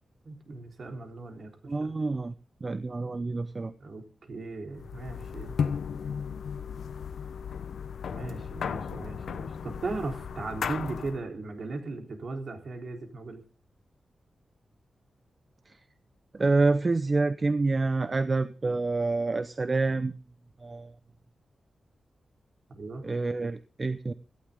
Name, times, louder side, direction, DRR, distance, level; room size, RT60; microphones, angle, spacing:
voice 1, 0.2-1.9 3.8-5.6 8.1-13.4 22.7-23.0, right 3 dB, 50° right, 4 dB, 3.8 m, -37 dB
voice 2, 1.7-2.3 2.6-3.7 15.7-15.8 16.3-20.2 20.6-20.9 23.0-24.1, right 3 dB, 30° right, 12 dB, 0.8 m, -27 dB
sound 1, 4.7-11.2, left 7 dB, 85° left, 1.0 m, -35 dB
17.5 x 15.5 x 3.8 m, 0.35 s
wide cardioid pair, 145°, 0 cm